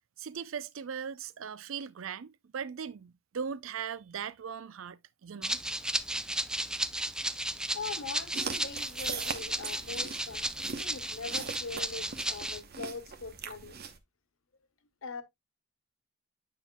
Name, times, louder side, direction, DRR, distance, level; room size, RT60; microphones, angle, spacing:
voice 1, 0.2-5.6, right 7 dB, 75° right, 0.5 m, -39 dB
Rattle (instrument), 5.4-12.6, right 1 dB, 5° right, 0.3 m, -34 dB
voice 2, 7.7-10.4 10.7-13.8 15.0-15.2, left 4 dB, 85° left, 1.2 m, -42 dB
sound 1, 8.3-14.0, right 6 dB, 50° right, 0.9 m, -41 dB
9.1 x 5.8 x 2.2 m
head